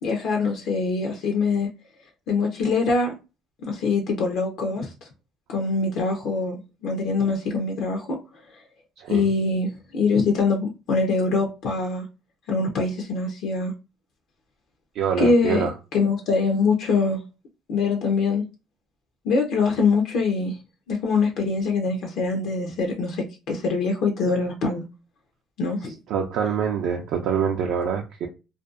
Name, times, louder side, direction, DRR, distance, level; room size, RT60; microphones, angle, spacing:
voice 1, 0.0-1.7 2.3-3.1 3.7-5.1 5.5-6.5 6.8-8.2 9.1-12.1 12.5-13.7 15.2-15.6 15.9-17.2 17.7-18.4 19.2-20.6 20.9-24.8 25.6-26.0, left 4 dB, 65° left, 0.5 m, -23 dB
voice 2, 15.0-15.7 26.1-28.3, right 7 dB, 70° right, 0.4 m, -25 dB
2.5 x 2.2 x 2.3 m
cardioid pair, 130°, 0 cm